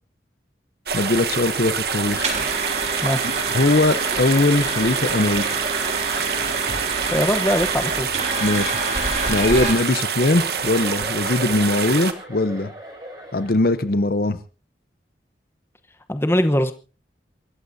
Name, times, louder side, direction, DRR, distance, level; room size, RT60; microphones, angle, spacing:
voice 1, 0.9-2.3 3.2-5.5 8.4-8.8 9.3-12.7 13.3-14.4, left 2 dB, 55° left, 13 dB, 0.8 m, -21 dB
sound 1, 0.9-12.1, right 6 dB, 60° right, 1.2 m, -26 dB
sound 2, 2.0-9.7, right 3 dB, 40° right, 3.6 m, -28 dB
voice 2, 7.0-8.1 16.1-16.7, equal, 15° left, 9 dB, 0.9 m, -21 dB
Chuckle chortle, 10.2-13.9, equal, 25° right, 6.7 m, -38 dB
28.0 x 14.5 x 2.7 m, 0.36 s
head